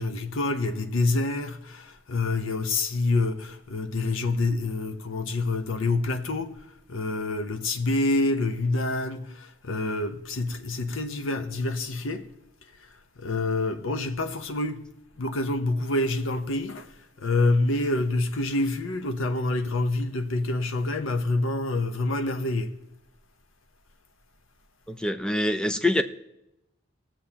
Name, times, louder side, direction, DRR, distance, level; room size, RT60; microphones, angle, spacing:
voice 1, 0.0-12.3 12.6-14.8 15.2-22.7, left 2 dB, 80° left, 0.8 m, -27 dB
voice 2, 24.9-26.0, left 1 dB, 5° left, 0.4 m, -25 dB
19.0 x 7.4 x 2.8 m
head